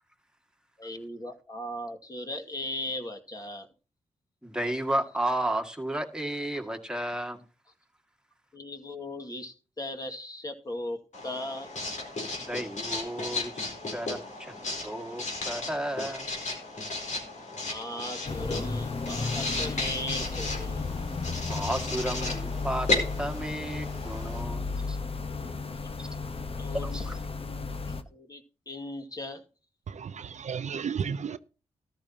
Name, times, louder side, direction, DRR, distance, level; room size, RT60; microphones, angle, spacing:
voice 1, 0.8-3.7 8.5-11.7 17.7-21.0 26.5-27.0 27.3-29.4, left 1 dB, 30° left, 2.2 m, -38 dB
voice 2, 4.4-7.4 12.4-13.6 13.9-14.5 14.8-16.3 21.5-22.9 23.2-25.0 26.0-26.1 26.9-27.2, right 1 dB, 5° right, 2.1 m, -33 dB
Writing, 11.1-24.4, left 2 dB, 65° left, 4.2 m, -35 dB
sound 1, 18.3-28.0, left 4 dB, 45° left, 1.2 m, -34 dB
voice 3, 29.9-31.4, right 7 dB, 65° right, 0.6 m, -33 dB
13.5 x 11.5 x 2.9 m
cardioid pair, 55°, 13 cm